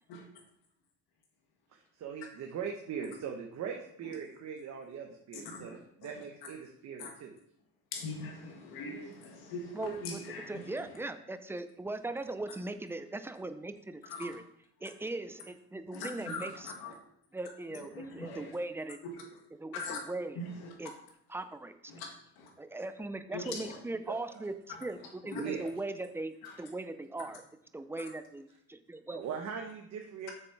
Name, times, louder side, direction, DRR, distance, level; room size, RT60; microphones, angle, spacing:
voice 1, 1.7-7.3 24.1-24.5 25.3-25.7 29.1-30.3, right 7 dB, 50° right, 2 dB, 1.0 m, -41 dB
voice 2, 5.5-5.8 7.0-7.1 7.9-10.6 14.1-14.3 15.9-16.5 16.8-16.9 17.9-18.5 19.0-19.1 19.7-20.0 20.6-20.7 21.9-22.1 22.4-22.5 23.3-23.8 25.3-25.4, left 3 dB, 85° left, 1 dB, 2.0 m, -41 dB
voice 3, 9.7-10.2 10.5-14.4 14.8-16.7 17.3-19.0 19.5-20.4 20.8-20.9 21.3-21.8 22.6-27.4 27.7-29.2, right 2 dB, 5° right, 10 dB, 0.4 m, -39 dB
7.0 x 6.8 x 4.6 m, 0.72 s
cardioid pair, 150°, 36 cm